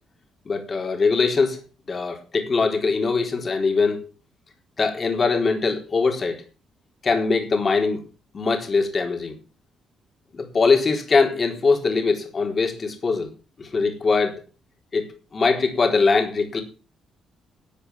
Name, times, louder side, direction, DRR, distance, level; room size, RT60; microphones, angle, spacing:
voice 1, 0.5-1.6 1.9-4.1 4.8-6.4 7.0-8.0 8.3-9.3 10.3-13.3 13.6-14.4 14.9-15.1 15.3-16.6, left 4 dB, 40° left, 3 dB, 4.1 m, -22 dB
13.0 x 7.9 x 7.3 m, 0.34 s
cardioid pair, 90°, 0 cm